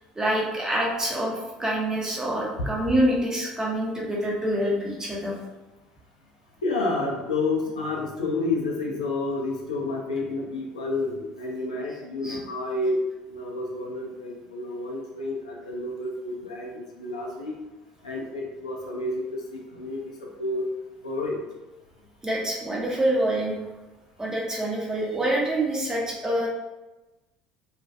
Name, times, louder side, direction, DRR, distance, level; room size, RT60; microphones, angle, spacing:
voice 1, 0.2-5.4 12.2-12.4 22.2-23.6 24.2-26.5, right 1 dB, 15° right, -3 dB, 0.7 m, -26 dB
voice 2, 6.6-13.0 13.3-17.5 18.0-20.0 20.4-20.7 21.0-21.4, left 2 dB, 85° left, -1 dB, 0.4 m, -30 dB
2.4 x 2.1 x 2.5 m, 1.1 s
hypercardioid pair, 65°, 4 cm